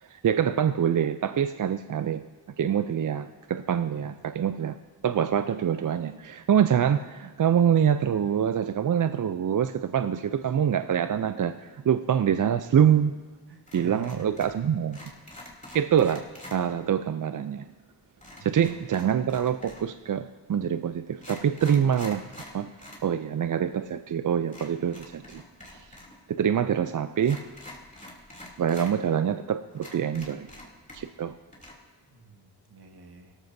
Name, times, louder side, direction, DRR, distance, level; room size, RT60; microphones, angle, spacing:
voice 1, 0.0-2.2 2.6-4.8 5.0-13.2 13.7-15.0 15.7-17.7 18.4-22.2 22.5-22.7 23.0-25.4 25.7-25.9 26.3-27.4 28.6-30.5 30.9-31.3, right 8 dB, 50° right, 10 dB, 0.5 m, -25 dB
voice 2, 13.5-14.5 18.4-18.6 32.1-33.4, right 2 dB, 70° right, 4 dB, 1.5 m, -46 dB
sound 1, 13.7-14.6 14.9-16.6 18.2-20.0 20.7-20.8 21.1-23.1 23.4-23.5 24.5-26.2 26.4-26.5 27.2-28.9 29.4-29.5 29.8-31.2 31.5-31.7, left 1 dB, 20° left, 2.9 m, -46 dB
17.0 x 13.5 x 2.7 m, 1.4 s
cardioid pair, 50°, 41 cm